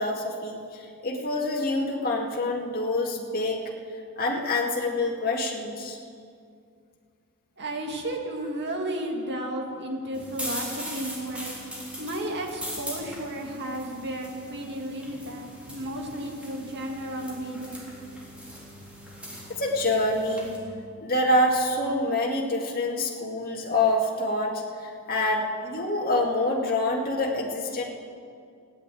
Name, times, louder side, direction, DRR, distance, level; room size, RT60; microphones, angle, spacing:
voice 1, 0.0-3.7 4.2-6.0 19.5-20.5 21.0-27.8, left 2 dB, 40° left, -1 dB, 2.1 m, -26 dB
voice 2, 7.6-11.5 12.0-17.9, right 1 dB, 50° right, 1 dB, 2.3 m, -33 dB
sound 1, 10.1-20.6, equal, 5° right, 3.7 m, -40 dB
16.5 x 9.7 x 9.1 m, 2.3 s
head